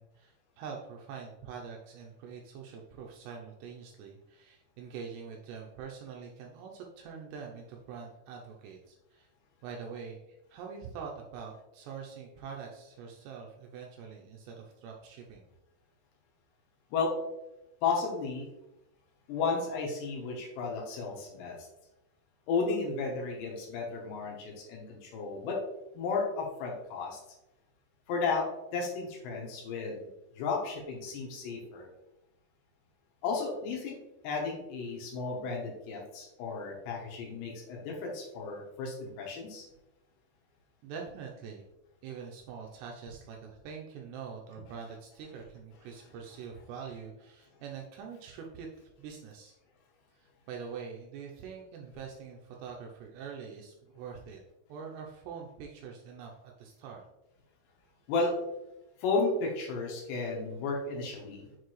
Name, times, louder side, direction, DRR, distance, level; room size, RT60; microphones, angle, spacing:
voice 1, 0.0-9.3 9.6-15.5 40.8-41.7 42.0-48.7 49.0-49.6 50.2-54.4 54.7-57.0, right 6 dB, 85° right, 0 dB, 2.5 m, -44 dB
voice 2, 17.8-18.5 19.3-21.6 22.5-25.6 25.9-27.2 28.1-28.5 28.7-30.1 30.3-31.9 33.2-34.0 34.2-39.7 58.1-58.3 59.0-61.6, left 4 dB, 75° left, -1 dB, 3.0 m, -33 dB
6.9 x 4.6 x 3.1 m, 0.92 s
omnidirectional pair, 5.4 m